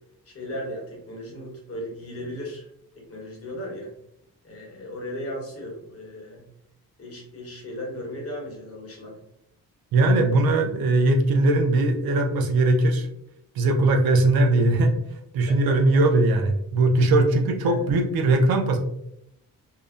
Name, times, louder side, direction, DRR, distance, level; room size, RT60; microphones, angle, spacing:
voice 1, 0.3-2.7 3.0-3.9 4.4-6.4 7.0-9.2 15.5-15.8 17.6-17.8, equal, 40° left, -2 dB, 1.1 m, -36 dB
voice 2, 9.9-13.1 13.6-14.9 15.3-18.8, right 2 dB, 90° right, 3 dB, 0.5 m, -20 dB
2.7 x 2.0 x 2.4 m, 0.75 s
cardioid pair, 90°, 36 cm